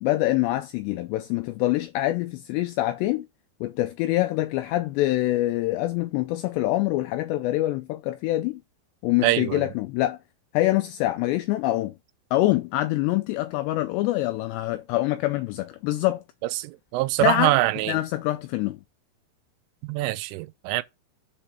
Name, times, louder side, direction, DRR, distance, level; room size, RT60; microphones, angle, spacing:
voice 1, 0.0-3.3 3.6-8.6 9.0-10.2 10.5-11.9 12.3-16.2 17.2-17.5 17.9-18.8, left 16 dB, 85° left, 2.4 m, -25 dB
voice 2, 9.2-9.6 16.5-18.0 19.8-20.8, right 17 dB, 90° right, 3.2 m, -24 dB
7.0 x 4.4 x 5.5 m
omnidirectional pair, 5.5 m